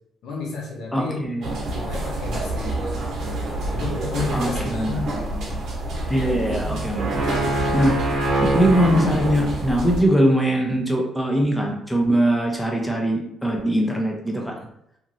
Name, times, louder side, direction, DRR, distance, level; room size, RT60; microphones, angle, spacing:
voice 1, 0.2-1.3 1.7-3.0 3.7-5.6 6.8-7.2, left 3 dB, 85° left, -2 dB, 0.9 m, -32 dB
voice 2, 0.9-1.6 4.3-5.0 6.1-7.1 7.7-8.0 8.5-14.5, equal, 5° left, -1 dB, 0.6 m, -21 dB
sound 1, 1.4-10.0, right 1 dB, 70° right, 0.9 m, -26 dB
2.9 x 2.6 x 2.6 m, 0.77 s
cardioid pair, 90°, 0 cm